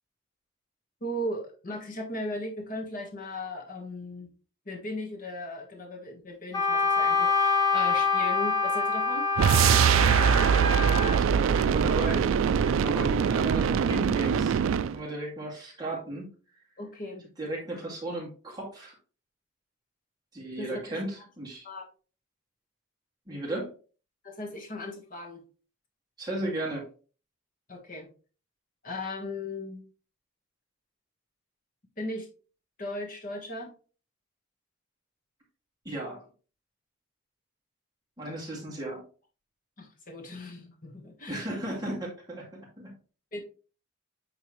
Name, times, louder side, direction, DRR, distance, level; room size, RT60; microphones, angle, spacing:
voice 1, 1.0-4.3 4.6-9.3 16.8-17.3 20.6-21.0 21.6-21.8 24.2-25.4 27.7-28.1 28.8-29.8 32.0-32.3 32.8-33.7 39.8-41.5 43.3-43.4, left 1 dB, 40° left, 1 dB, 1.4 m, -37 dB
Wind instrument woodwind instrument, 6.5-11.2, left 4 dB, 20° left, 1.2 m, -26 dB
sound 1, 9.4-15.0, right 7 dB, 75° right, 0.3 m, -23 dB
voice 2, 11.1-14.6 14.9-16.3 17.4-18.9 20.3-21.7 23.3-23.7 26.2-26.9 35.8-36.2 38.2-39.0 41.3-43.0, right 1 dB, 20° right, -4 dB, 2.2 m, -35 dB
8.7 x 3.5 x 3.1 m, 0.37 s
head